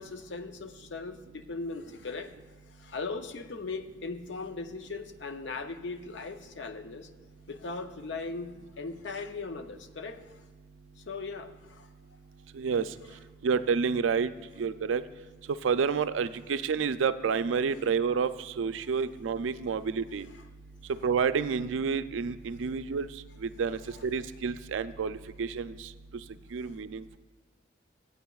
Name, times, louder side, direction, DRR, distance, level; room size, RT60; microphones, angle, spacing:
voice 1, 0.0-2.3 2.7-7.1 7.5-10.4 11.0-11.9 20.3-20.4 23.9-24.0 26.3-26.7, left 3 dB, 70° left, 8 dB, 0.6 m, -39 dB
voice 2, 13.4-14.3 14.6-15.0 15.6-20.3 21.0-23.1 23.4-25.7 26.5-27.2, right 6 dB, 90° right, 12 dB, 0.4 m, -29 dB
17.0 x 8.2 x 2.3 m, 1.3 s
head